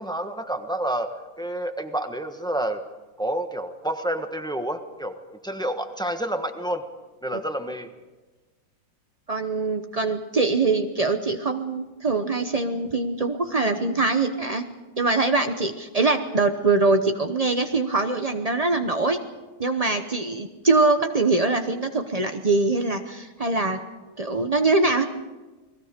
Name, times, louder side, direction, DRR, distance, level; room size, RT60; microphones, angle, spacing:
voice 1, 0.0-2.8 3.2-5.2 5.4-6.8 7.2-7.9, right 1 dB, 5° left, 6 dB, 0.9 m, -29 dB
voice 2, 9.3-14.6 15.0-19.2 19.6-23.8 24.2-25.0, right 3 dB, 90° right, 6 dB, 0.3 m, -23 dB
30.0 x 20.5 x 5.1 m, 1.2 s
omnidirectional pair, 2.2 m